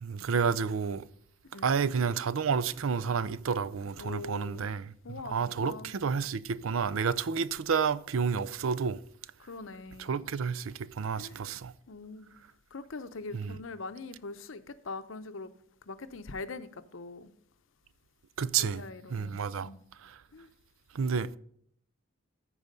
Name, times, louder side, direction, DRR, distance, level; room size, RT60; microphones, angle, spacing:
voice 1, 0.0-1.0 1.6-9.0 10.0-11.7 13.3-13.5 18.4-18.8 19.1-19.7 20.9-21.4, right 6 dB, 80° right, 0.5 m, -30 dB
voice 2, 4.0-4.7 5.0-5.9 9.4-10.2 11.2-11.4 11.9-12.3 12.7-15.5 15.9-17.3 18.6-19.9 20.3-20.5 21.2-21.4, left 3 dB, 70° left, 0.7 m, -43 dB
14.0 x 4.7 x 5.3 m
head